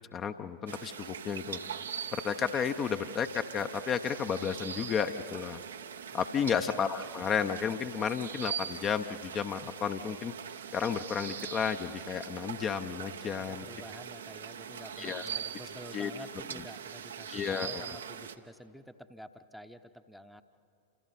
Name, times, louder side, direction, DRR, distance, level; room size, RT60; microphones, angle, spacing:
voice 1, 0.1-1.6 2.1-5.6 6.1-10.3 10.7-13.7 15.0-15.2 15.9-16.1 17.3-18.0, left 7 dB, 30° left, 7 dB, 0.8 m, -32 dB
sound 1, 0.7-18.4, right 7 dB, 65° right, 0.9 m, -42 dB
voice 2, 6.1-6.8 13.4-20.4, equal, ahead, 9 dB, 0.9 m, -49 dB
29.0 x 27.0 x 4.2 m, 2.3 s
figure-of-eight pair, 90°, 0 cm